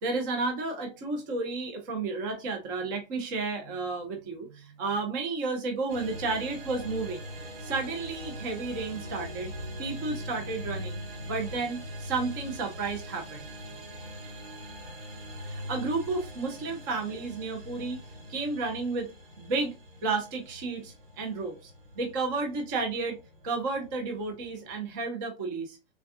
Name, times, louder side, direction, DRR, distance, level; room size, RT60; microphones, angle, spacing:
voice 1, 0.0-7.3 7.6-9.5 9.8-11.0 11.2-13.5 15.4-18.0 18.3-19.1 19.4-19.7 20.0-23.2 23.4-25.8, right 3 dB, 20° right, 0.5 m, -32 dB
sound 1, 5.9-25.0, equal, 55° right, 1.3 m, -42 dB
3.5 x 2.2 x 3.5 m
hypercardioid pair, 160°, 34 cm